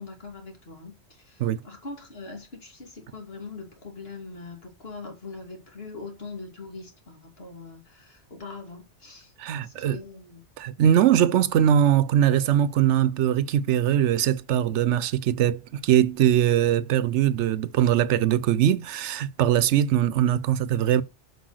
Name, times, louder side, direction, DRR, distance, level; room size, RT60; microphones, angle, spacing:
voice 1, 0.0-9.3 9.6-10.4, left 3 dB, 60° left, 2.9 m, -42 dB
voice 2, 9.4-10.0 10.6-21.0, right 10 dB, 85° right, 0.9 m, -21 dB
7.7 x 5.2 x 6.4 m
omnidirectional pair, 1.2 m